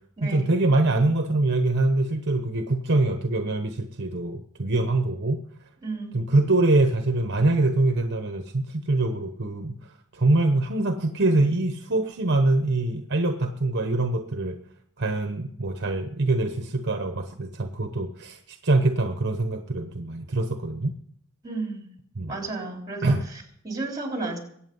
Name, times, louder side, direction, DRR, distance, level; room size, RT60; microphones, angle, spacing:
voice 1, 0.2-5.4 6.1-9.7 10.1-14.6 15.0-20.9 22.2-22.3 23.0-23.2, right 2 dB, 50° right, 6 dB, 1.0 m, -24 dB
voice 2, 5.8-6.3 21.4-21.9 22.3-24.4, right 3 dB, 20° right, 1 dB, 3.7 m, -33 dB
22.5 x 8.7 x 5.5 m, 0.67 s
head